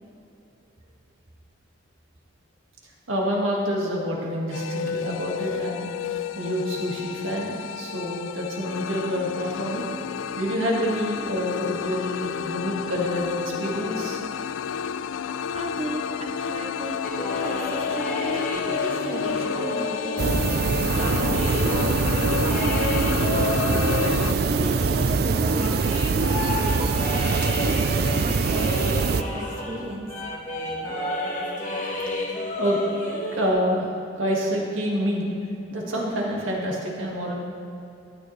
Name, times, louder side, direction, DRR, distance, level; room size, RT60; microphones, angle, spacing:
voice 1, 3.1-5.9 6.4-9.8 10.4-14.2 32.6-32.8 33.3-33.9 34.2-35.3 35.7-37.3, equal, 85° right, -2 dB, 2.0 m, -27 dB
sound 1, 4.5-24.3, left 7 dB, 80° left, 0.3 m, -31 dB
voice 2, 15.5-17.0 17.4-20.5 20.9-22.0 22.3-30.1, right 1 dB, 30° right, 1 dB, 0.7 m, -36 dB
sound 2, 17.0-29.8 30.1-33.5, left 1 dB, 40° left, 1.6 m, -31 dB
sound 3, 20.2-29.2, right 4 dB, 50° right, 0.4 m, -23 dB
12.5 x 10.5 x 3.3 m, 2.8 s
head